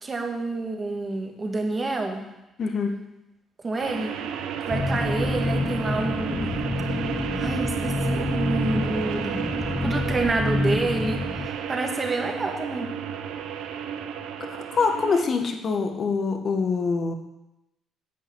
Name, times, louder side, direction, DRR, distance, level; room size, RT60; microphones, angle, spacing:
voice 1, 0.0-2.3 3.6-4.1 4.7-6.6 7.4-9.4 9.8-12.9, right 2 dB, 25° right, 3 dB, 1.8 m, -28 dB
voice 2, 2.6-2.9 14.7-17.1, left 4 dB, 45° left, 5 dB, 1.4 m, -24 dB
sound 1, 3.8-15.2, right 8 dB, 90° right, 0.8 m, -32 dB
sound 2, 4.7-11.5, left 3 dB, 20° left, 0.7 m, -28 dB
10.0 x 5.6 x 8.2 m, 0.93 s
cardioid pair, 110°, 0 cm